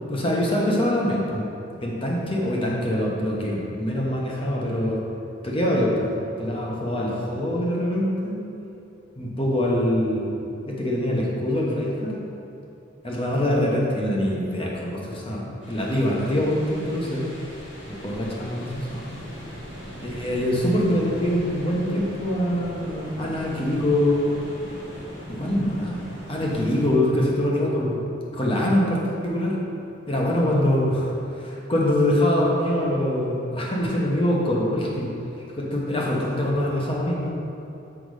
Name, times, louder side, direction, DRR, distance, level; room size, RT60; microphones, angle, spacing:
voice 1, 0.1-1.4 1.8-5.0 5.4-6.1 6.4-8.4 9.2-10.3 10.7-12.2 13.0-17.2 17.8-19.1 20.0-24.3 25.4-26.0 26.3-28.0 28.3-29.6 30.1-31.1 31.4-35.1 35.6-37.3, left 1 dB, 30° left, -3 dB, 1.1 m, -24 dB
sound 1, 15.6-26.9, equal, 75° left, 1.7 m, -39 dB
6.1 x 5.2 x 4.9 m, 2.8 s
head